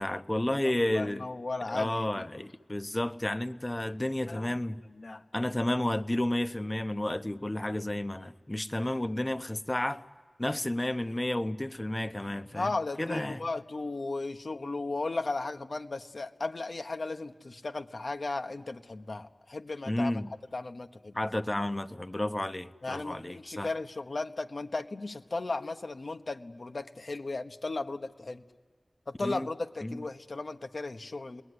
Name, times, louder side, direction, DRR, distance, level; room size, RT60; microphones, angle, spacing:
voice 1, 0.0-1.3 1.7-4.8 5.3-10.0 10.4-12.7 13.0-13.4 19.9-20.3 21.1-23.7 29.2-29.5 29.8-30.0, left 1 dB, 25° left, 0.9 m, -31 dB
voice 2, 0.6-2.3 4.3-4.6 5.0-5.2 12.5-20.1 20.5-21.2 22.8-28.4 29.1-31.4, left 3 dB, 65° left, 1.1 m, -36 dB
29.0 x 20.5 x 9.7 m
wide cardioid pair, 45°, 0 cm